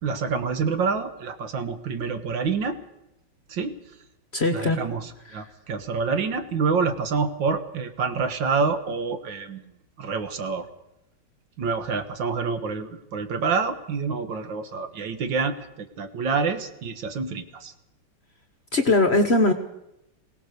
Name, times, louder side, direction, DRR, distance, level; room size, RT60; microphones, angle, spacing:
voice 1, 0.0-2.8 3.5-3.7 4.5-9.7 10.0-10.7 11.6-17.7, right 5 dB, 70° right, 9 dB, 2.1 m, -27 dB
voice 2, 4.3-4.8 18.7-19.5, left 2 dB, 40° left, 8 dB, 1.1 m, -20 dB
22.0 x 18.0 x 6.7 m, 0.87 s
omnidirectional pair, 2.2 m